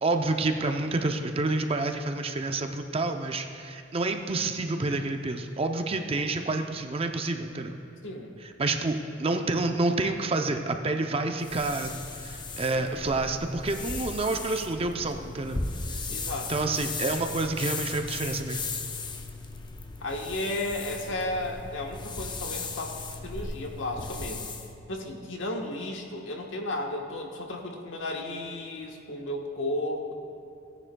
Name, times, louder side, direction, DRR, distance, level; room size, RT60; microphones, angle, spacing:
voice 1, 0.0-7.7 8.4-15.6 15.9-16.0 16.5-18.6, right 2 dB, 30° right, 5 dB, 0.5 m, -28 dB
voice 2, 8.0-8.3 12.7-13.2 16.1-16.5 20.0-24.5 24.9-30.1, left 1 dB, 90° left, 1 dB, 1.3 m, -34 dB
sound 1, 11.4-24.7, left 3 dB, 25° left, 0.6 m, -37 dB
17.0 x 9.9 x 2.3 m, 2.7 s
head